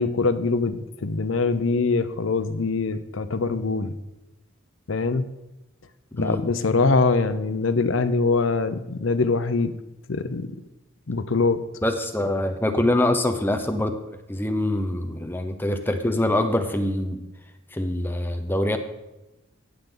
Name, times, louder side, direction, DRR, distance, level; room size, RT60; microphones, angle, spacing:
voice 1, 0.0-3.9 4.9-5.2 6.1-9.8 10.1-10.5 11.1-11.6, left 3 dB, 75° left, 12 dB, 0.7 m, -23 dB
voice 2, 11.8-13.9 14.3-17.2 17.7-18.8, left 1 dB, 10° left, 7 dB, 0.8 m, -24 dB
16.0 x 8.1 x 3.9 m, 0.97 s
head